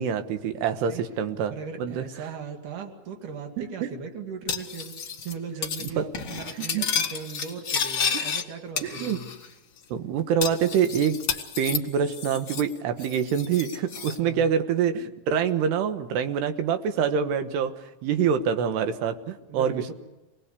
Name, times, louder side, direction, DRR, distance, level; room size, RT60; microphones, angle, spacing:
voice 1, 0.0-2.3 3.6-3.9 5.8-6.0 6.5-6.9 8.1-8.3 8.8-9.2 9.9-11.2 11.6-19.9, right 7 dB, 90° right, 8 dB, 3.4 m, -26 dB
voice 2, 1.5-5.0 5.2-9.3 14.0-14.5 19.4-19.9, right 5 dB, 55° right, 4 dB, 3.7 m, -38 dB
Cutlery silverware, 4.5-5.3 5.6-5.9 6.1-8.4 8.8-9.5 9.8-9.9 10.4-12.7 13.0-14.2, left 7 dB, 40° left, 2.0 m, -31 dB
26.5 x 20.0 x 8.3 m, 1.0 s
omnidirectional pair, 4.6 m